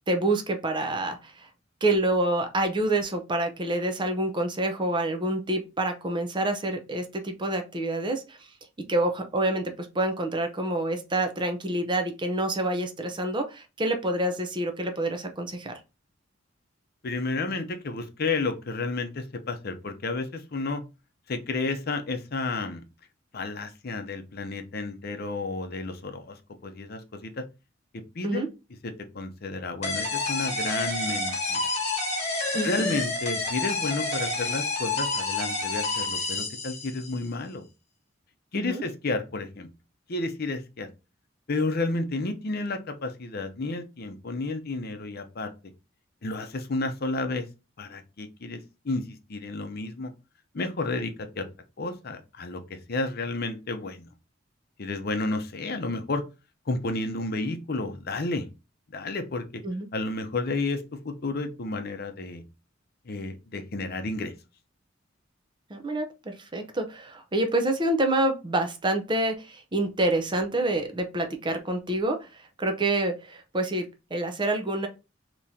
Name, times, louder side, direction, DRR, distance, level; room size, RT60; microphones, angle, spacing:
voice 1, 0.1-1.5 1.8-8.4 8.9-15.7 28.2-28.5 32.5-32.9 38.5-38.8 59.6-59.9 65.7-72.3 72.6-74.9, right 1 dB, 25° right, 6 dB, 0.6 m, -27 dB
voice 2, 17.0-20.8 21.3-22.8 23.3-26.4 26.6-27.4 28.1-28.4 28.8-31.7 32.6-37.7 38.5-39.7 40.1-40.9 41.5-45.5 46.2-47.5 47.8-48.6 48.8-50.1 50.5-51.5 51.8-54.1 54.8-56.2 56.7-58.5 58.9-59.6 59.9-62.4 63.1-64.3, left 3 dB, 55° left, 7 dB, 0.7 m, -31 dB
sound 1, 29.8-37.2, left 3 dB, 35° left, 1.3 m, -29 dB
3.6 x 3.0 x 2.7 m, 0.27 s
head